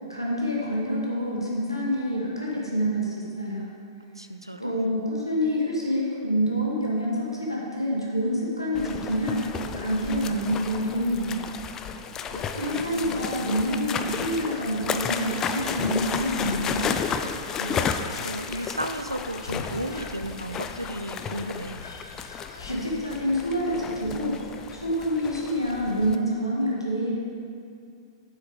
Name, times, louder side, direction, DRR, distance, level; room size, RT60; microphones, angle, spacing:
voice 1, 0.1-3.7 4.6-9.4 9.8-11.5 12.6-16.9 22.6-24.4 24.7-27.1, equal, 90° left, -5 dB, 1.9 m, -27 dB
voice 2, 4.2-4.9 12.3-13.2 17.6-21.8, right 1 dB, 90° right, 8 dB, 0.5 m, -34 dB
sound 1, 8.7-26.2, left 6 dB, 20° left, 0.4 m, -33 dB
Whispering, 12.4-23.5 23.8-23.9 24.1-24.5, left 3 dB, 70° left, 0.8 m, -45 dB
7.7 x 6.7 x 5.1 m, 2.4 s
figure-of-eight pair, 105°, 2 cm